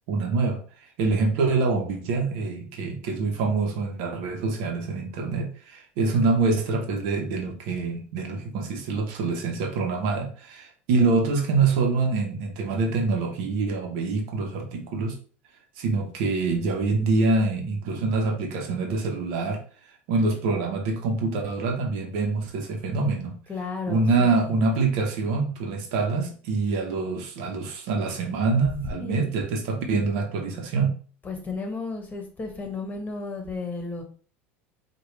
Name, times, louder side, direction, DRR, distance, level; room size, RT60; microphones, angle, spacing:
voice 1, 0.1-0.6 1.0-15.2 15.8-19.6 20.1-23.4 23.9-30.9, right 3 dB, 70° right, 3 dB, 1.0 m, -25 dB
voice 2, 23.5-24.6 28.8-29.3 31.2-34.0, left 3 dB, 25° left, 4 dB, 1.3 m, -34 dB
4.8 x 2.5 x 3.2 m, 0.41 s
hypercardioid pair, 85°, 7 cm